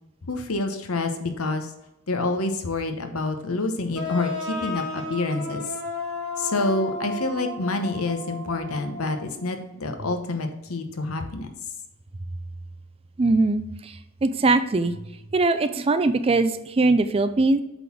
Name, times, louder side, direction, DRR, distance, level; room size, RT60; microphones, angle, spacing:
voice 1, 0.3-1.7 2.1-5.6 6.4-11.5, left 2 dB, 80° left, 6 dB, 1.0 m, -27 dB
sound 1, 3.9-9.5, left 2 dB, 5° right, 2.5 m, -33 dB
voice 2, 13.2-14.9 15.3-17.6, right 3 dB, 25° right, 11 dB, 0.4 m, -21 dB
8.2 x 3.9 x 6.0 m, 0.92 s
head